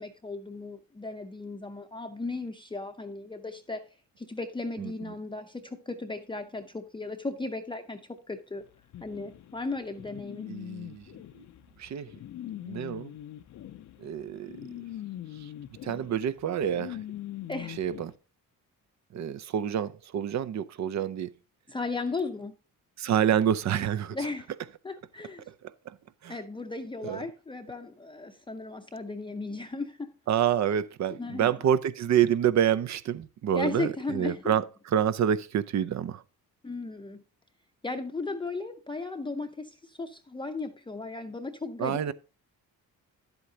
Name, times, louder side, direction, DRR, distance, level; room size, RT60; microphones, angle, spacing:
voice 1, 0.0-3.8 4.2-8.6 9.0-10.5 17.5-17.8 21.7-22.5 24.1-24.5 24.8-25.5 26.3-30.1 31.2-31.5 33.5-34.5 36.6-37.2 37.8-42.1, left 3 dB, 15° left, 0.6 m, -36 dB
sound 1, 8.9-18.0, left 12 dB, 55° left, 0.6 m, -42 dB
voice 2, 10.5-11.1 11.4-11.5 11.8-12.1 12.6-13.1 14.0-14.7 15.4-15.5 15.8-17.0 17.8-18.1 19.1-21.3 23.0-24.2 25.5-26.0 26.2-26.3 27.0-27.2 30.3-36.2 41.8-42.1, right 9 dB, 50° right, 0.6 m, -28 dB
10.5 x 8.0 x 2.8 m
cardioid pair, 120°, 35 cm